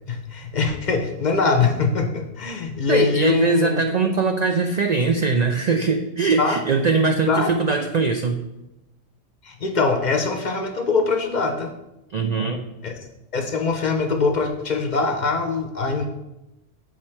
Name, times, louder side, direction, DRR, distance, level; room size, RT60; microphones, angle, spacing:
voice 1, 0.1-3.8 6.4-6.6 7.3-7.5 9.4-11.7 12.8-12.9 13.3-16.1, left 4 dB, 45° left, 5 dB, 0.7 m, -22 dB
voice 2, 2.9-8.4 12.1-12.6, right 4 dB, 85° right, 5 dB, 0.3 m, -21 dB
7.5 x 4.3 x 4.3 m, 0.93 s
omnidirectional pair, 1.3 m